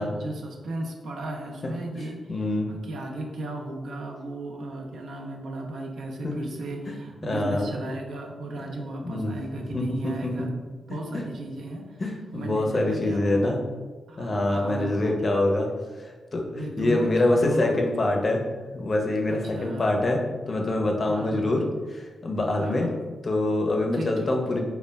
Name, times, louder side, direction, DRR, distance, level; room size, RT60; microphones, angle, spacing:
voice 1, 0.0-12.0 12.3-13.6 14.1-15.2 16.5-17.8 19.3-19.9 21.1-21.6 22.5-23.0 23.9-24.3, right 1 dB, 80° right, 1 dB, 0.4 m, -35 dB
voice 2, 2.3-2.7 6.2-6.3 6.9-7.0 7.2-7.7 9.0-9.3 9.7-10.5 11.1-11.2 12.0-13.6 14.2-15.7 16.0-18.4 18.7-20.2 20.5-21.6 21.9-22.9 23.2-24.6, left 2 dB, 45° left, 1 dB, 0.5 m, -25 dB
2.1 x 2.0 x 3.3 m, 1.3 s
cardioid pair, 65°, 0 cm